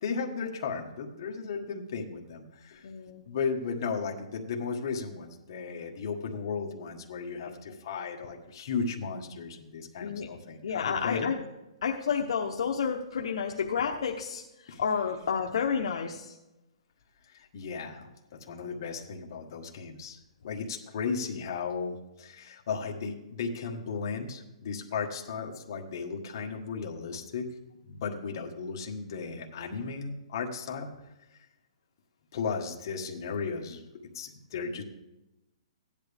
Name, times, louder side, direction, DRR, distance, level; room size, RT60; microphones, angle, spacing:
voice 1, 0.0-2.8 3.2-11.3 14.7-14.8 17.3-27.5 27.8-30.9 32.3-33.8 34.1-34.8, left 5 dB, 35° left, 1 dB, 1.5 m, -35 dB
voice 2, 2.8-3.2 7.5-7.6 10.0-10.3 10.6-11.4 11.8-16.3, left 6 dB, 55° left, 1 dB, 0.9 m, -30 dB
15.5 x 10.5 x 3.5 m, 0.98 s
hypercardioid pair, 175°, 3 cm